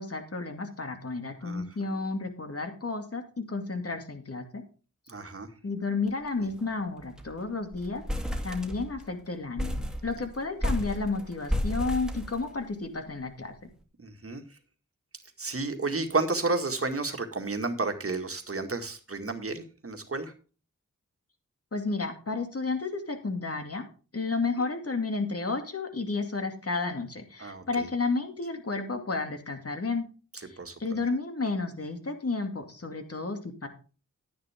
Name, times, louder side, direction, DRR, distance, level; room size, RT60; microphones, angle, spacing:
voice 1, 0.0-4.6 5.6-8.0 8.4-13.7 21.7-23.8 24.1-30.1 30.4-33.7, left 3 dB, 50° left, 5 dB, 2.4 m, -32 dB
voice 2, 5.1-5.5 6.4-6.5 14.0-14.4 15.4-20.3 27.4-27.9 30.6-30.8, right 3 dB, 45° right, 6 dB, 2.0 m, -31 dB
sound 1, 6.1-6.3 6.6-6.7 7.0-7.4 7.7-9.1 9.6-12.9, left 1 dB, ahead, 2.3 m, -32 dB
10.5 x 10.0 x 3.6 m, 0.36 s
cardioid pair, 50°, 30 cm